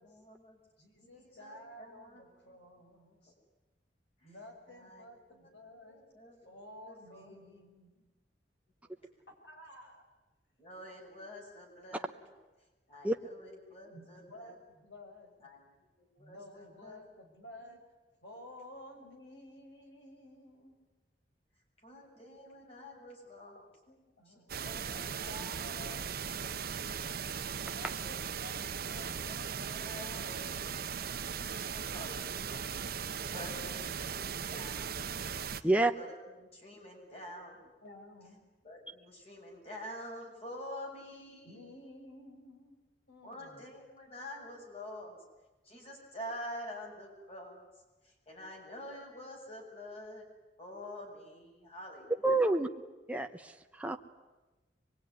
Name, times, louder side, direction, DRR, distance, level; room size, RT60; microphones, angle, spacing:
voice 1, 0.0-0.6 1.0-2.6 4.2-4.3 4.7-6.5 6.8-7.4 9.0-9.1 10.6-12.3 12.9-14.6 15.4-17.1 19.0-19.4 21.8-23.7 24.3-25.3 25.8-25.9 29.2-30.9 31.6-32.6 32.9-34.9 35.5-37.7 38.6-41.7 43.2-45.2 45.6-47.7 48.0-50.2 50.6-52.1 52.4-52.5, left 1 dB, 35° left, 0 dB, 7.3 m, -48 dB
voice 2, 0.8-3.3 4.2-6.0 6.4-8.1 9.4-10.0 13.9-15.5 16.2-17.8 18.2-20.8 23.9-26.8 27.6-29.2 29.7-31.1 33.2-34.3 37.8-38.4 41.4-42.8 43.1-43.6, left 1 dB, 85° left, 2 dB, 6.4 m, -53 dB
sound 1, 24.5-35.6, right 7 dB, 60° right, 0.9 m, -38 dB
voice 3, 52.2-52.7 53.1-54.0, right 2 dB, 10° right, 5 dB, 1.0 m, -28 dB
24.0 x 22.0 x 9.8 m, 1.1 s
head